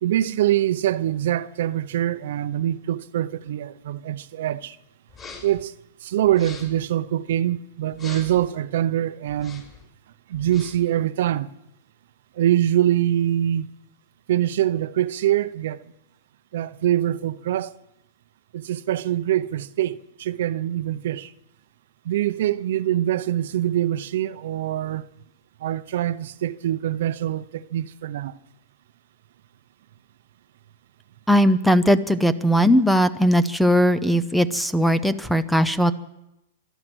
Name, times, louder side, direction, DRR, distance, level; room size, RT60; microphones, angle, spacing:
voice 1, 0.0-4.8 5.4-5.7 6.0-9.7 10.3-11.5 12.4-13.7 14.3-15.8 16.5-17.7 18.5-21.3 22.0-25.1 25.6-28.4, right 12 dB, 65° right, 0.7 m, -24 dB
sound 1, 5.1-5.6 6.3-6.8 7.9-8.5 9.3-9.8 10.3-10.9, left 4 dB, 25° left, 5.5 m, -42 dB
voice 2, 31.3-35.9, equal, ahead, 0.7 m, -19 dB
25.5 x 9.2 x 6.2 m
hypercardioid pair, 140°, 0 cm